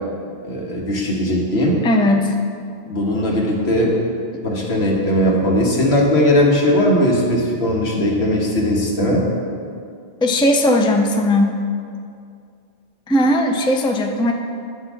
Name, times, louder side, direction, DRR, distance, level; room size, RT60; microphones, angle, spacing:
voice 1, 0.4-1.8 2.9-4.0 4.4-9.3, left 1 dB, 90° left, -2 dB, 1.7 m, -18 dB
voice 2, 1.8-2.3 10.2-11.5 13.1-14.3, left 1 dB, 5° left, 3 dB, 0.4 m, -17 dB
10.5 x 3.9 x 7.2 m, 2.3 s
omnidirectional pair, 1.0 m